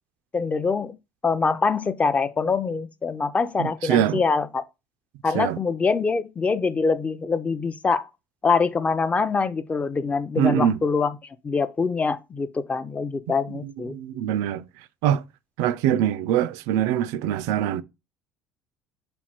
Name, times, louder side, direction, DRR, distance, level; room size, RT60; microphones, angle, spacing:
voice 1, 0.3-0.9 1.2-4.6 5.2-8.1 8.4-11.1 11.4-13.9, left 4 dB, 25° left, 0.4 m, -24 dB
voice 2, 3.6-4.2 5.3-5.6 10.4-10.8 13.5-14.6 15.0-15.2 15.6-17.8, right 10 dB, 75° right, 0.3 m, -23 dB
4.3 x 2.3 x 4.3 m
supercardioid pair, 95°, 6 cm